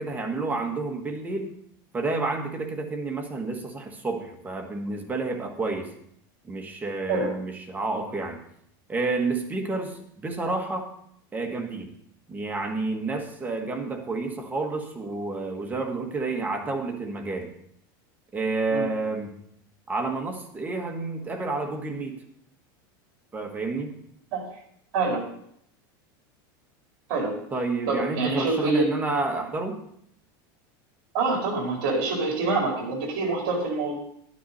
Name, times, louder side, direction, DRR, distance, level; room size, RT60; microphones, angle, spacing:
voice 1, 0.0-1.5 1.9-5.9 6.4-8.4 8.9-10.9 11.3-11.9 12.3-17.5 18.3-19.4 19.9-22.2 23.3-24.0 27.5-29.8, right 3 dB, 15° right, 3 dB, 1.5 m, -30 dB
voice 2, 24.9-25.3 27.1-27.4 27.9-28.9 31.1-34.0, right 3 dB, 55° right, -2 dB, 4.4 m, -26 dB
11.5 x 9.6 x 4.2 m, 0.70 s
supercardioid pair, 140°, 12 cm